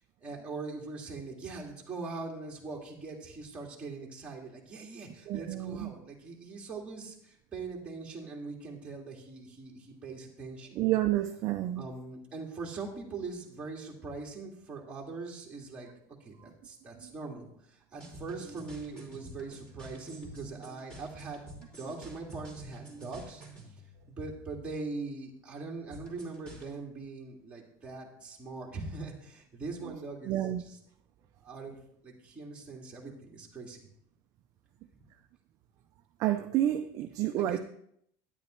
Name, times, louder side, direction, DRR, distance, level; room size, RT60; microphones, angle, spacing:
voice 1, 0.2-10.8 11.7-15.9 16.2-21.4 21.7-23.4 24.1-30.8 31.4-33.9 37.4-37.6, right 3 dB, 10° right, 1.9 m, -42 dB
voice 2, 5.3-5.9 10.8-11.8 16.4-16.5 17.0-17.1 30.3-30.6 36.2-37.6, right 13 dB, 35° right, 0.4 m, -29 dB
sound 1, 17.9-24.5 25.9-26.8, right 2 dB, 10° left, 3.0 m, -48 dB
12.0 x 10.0 x 3.1 m
cardioid pair, 175°, 10 cm